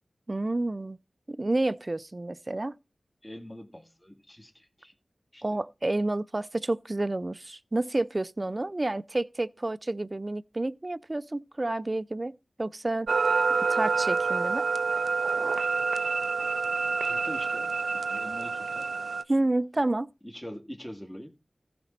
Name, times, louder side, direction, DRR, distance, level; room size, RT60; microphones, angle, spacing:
voice 1, 0.3-1.0 1.3-2.8 5.4-13.1 13.7-14.7 19.3-20.1, right 2 dB, 35° right, 0.5 m, -29 dB
voice 2, 3.2-4.9 5.3-5.4 8.5-8.6 17.0-18.9 20.2-21.3, equal, 15° left, 1.9 m, -44 dB
sound 1, 13.1-19.2, right 4 dB, 85° right, 0.4 m, -27 dB
15.0 x 5.1 x 4.3 m
cardioid pair, 50°, 0 cm